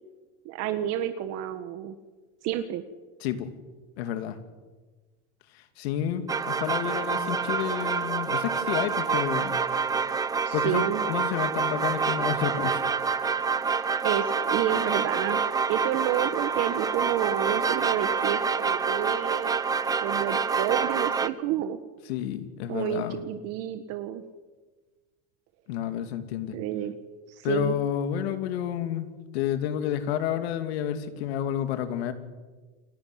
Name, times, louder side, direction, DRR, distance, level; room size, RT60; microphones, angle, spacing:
voice 1, 0.5-1.9 2.4-2.8 10.5-11.0 14.0-15.4 15.7-19.6 20.0-21.8 22.7-24.2 26.5-27.0 27.3-27.8, right 11 dB, 50° right, 9 dB, 1.7 m, -30 dB
voice 2, 4.0-4.4 5.5-9.6 10.5-12.8 22.1-23.2 25.7-26.6 27.4-29.1 29.3-32.1, left 10 dB, 80° left, 9 dB, 2.7 m, -30 dB
sound 1, 6.3-21.3, right 5 dB, 10° right, 0.8 m, -27 dB
29.0 x 18.0 x 9.6 m, 1.3 s
supercardioid pair, 150°, 31 cm